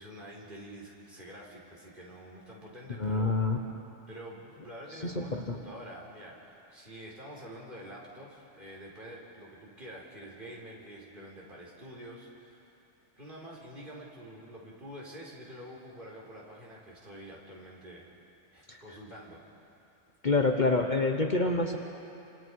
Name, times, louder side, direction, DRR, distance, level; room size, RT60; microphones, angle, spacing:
voice 1, 0.0-3.3 4.1-12.8 13.2-18.0 18.5-19.4, equal, 45° right, -3 dB, 4.4 m, -47 dB
voice 2, 3.0-3.6 4.9-5.6 18.7-19.0 20.2-21.8, left 3 dB, 40° left, 3 dB, 1.2 m, -27 dB
28.5 x 26.0 x 4.8 m, 2.8 s
omnidirectional pair, 1.3 m